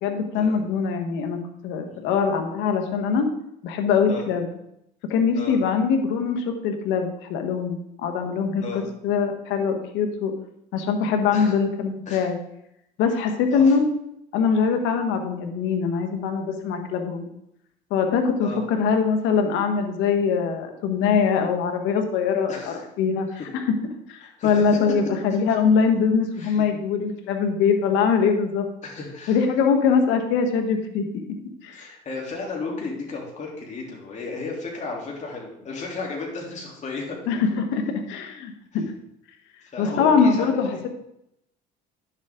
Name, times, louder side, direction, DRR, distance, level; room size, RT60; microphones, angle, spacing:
voice 1, 0.0-3.3 3.6-4.5 5.0-10.4 10.7-12.4 13.0-13.8 14.3-17.3 17.9-23.3 23.5-23.7 24.1-28.7 29.3-31.2 31.6-31.9 37.3-38.8 39.8-40.9, left 6 dB, 75° left, 5 dB, 1.4 m, -23 dB
voice 2, 22.5-22.8 23.3-23.4 24.4-24.8 26.4-26.6 28.8-29.4 31.7-37.2 39.6-40.8, left 3 dB, 40° left, -2 dB, 3.1 m, -34 dB
10.5 x 7.4 x 3.7 m, 0.79 s
supercardioid pair, 95°, 19 cm